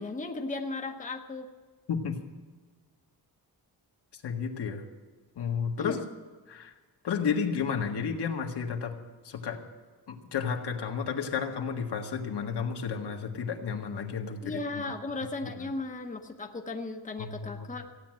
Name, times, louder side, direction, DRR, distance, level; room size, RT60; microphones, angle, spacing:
voice 1, 0.0-1.5 5.8-6.0 14.4-17.9, left 3 dB, 20° left, 3 dB, 1.0 m, -36 dB
voice 2, 4.1-4.8 5.4-6.0 6.5-6.7 7.0-9.0 9.2-9.6 10.1-14.9 15.4-15.7 17.2-17.7, left 6 dB, 80° left, 3 dB, 1.7 m, -32 dB
16.0 x 9.4 x 7.6 m, 1.4 s
wide cardioid pair, 165°, 39 cm